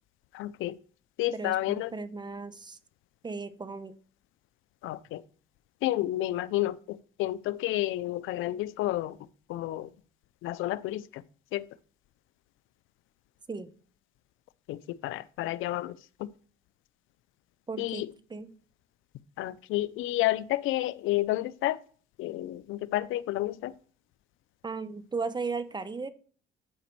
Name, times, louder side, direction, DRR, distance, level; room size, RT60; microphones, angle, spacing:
voice 1, 0.3-0.8 1.2-1.9 4.8-5.2 5.8-9.2 9.5-9.9 10.4-11.2 11.5-11.7 14.7-16.3 17.8-18.1 19.4-21.8 22.2-23.7, left 15 dB, 90° left, 0.5 m, -30 dB
voice 2, 1.3-2.8 3.2-3.9 13.5-13.7 17.7-18.0 18.3-18.5 24.6-26.1, right 4 dB, 20° right, 0.9 m, -36 dB
10.0 x 5.1 x 4.6 m
cardioid pair, 90°, 20 cm